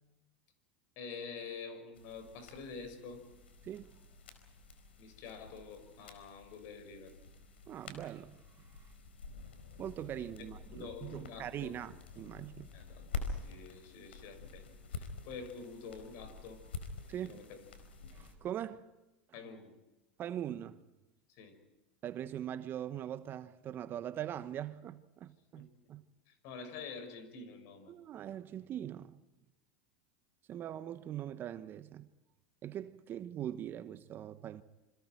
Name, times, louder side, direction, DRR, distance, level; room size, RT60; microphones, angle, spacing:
voice 1, 1.0-3.2 5.0-7.1 10.4-11.7 12.7-16.6 17.2-17.6 19.3-19.7 21.3-21.6 25.6-25.7 26.3-27.9, left 5 dB, 60° left, 6.0 m, -47 dB
sound 1, 1.9-18.3, left 4 dB, 85° left, 4.5 m, -48 dB
voice 2, 7.7-8.4 8.7-8.8 9.8-12.7 17.1-17.4 18.1-18.9 19.3-19.4 20.2-20.8 22.0-26.0 27.9-29.2 30.5-32.1 32.6-34.6, right 11 dB, 40° right, 1.2 m, -42 dB
27.5 x 26.0 x 4.7 m
hypercardioid pair, 100°, 6 cm